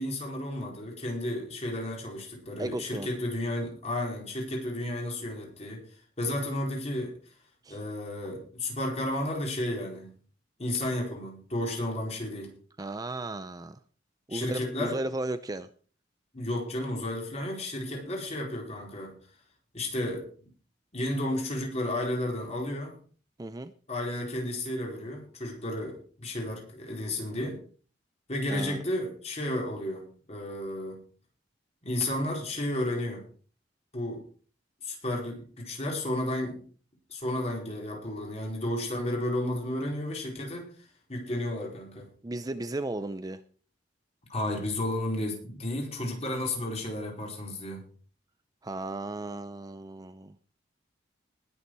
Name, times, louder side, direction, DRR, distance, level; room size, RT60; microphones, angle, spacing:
voice 1, 0.0-5.8 6.2-7.1 7.7-10.1 10.6-12.6 14.3-15.0 16.3-19.2 19.7-20.5 20.9-23.0 23.9-27.6 28.3-31.0 31.8-33.3 33.9-34.3 34.8-36.6 37.1-40.7 41.1-42.1 44.3-47.8, left 1 dB, 35° left, 0 dB, 4.5 m, -32 dB
voice 2, 2.6-3.1 7.6-7.8 12.8-13.8 14.3-15.7 23.4-23.7 28.5-28.8 42.2-43.4 48.6-50.4, right 2 dB, 20° right, 12 dB, 0.5 m, -35 dB
20.0 x 7.1 x 4.7 m, 0.41 s
head